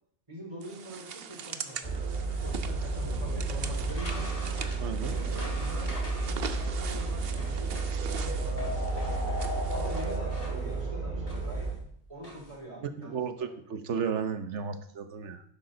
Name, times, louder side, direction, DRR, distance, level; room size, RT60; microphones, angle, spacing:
voice 1, 0.3-2.1 2.4-4.3 5.1-6.0 6.5-7.8 8.1-9.2 9.7-11.7 12.1-13.5, equal, 30° right, -2 dB, 3.8 m, -44 dB
sound 1, 0.6-10.2, right 6 dB, 60° right, 1.0 m, -42 dB
sound 2, 1.8-11.7, right 3 dB, 45° right, 2.5 m, -32 dB
sound 3, 3.6-12.5, equal, 35° left, 3.5 m, -45 dB
voice 2, 4.8-5.2 12.8-15.4, right 6 dB, 90° right, 10 dB, 1.3 m, -34 dB
11.5 x 11.0 x 3.9 m, 0.64 s
omnidirectional pair, 1.2 m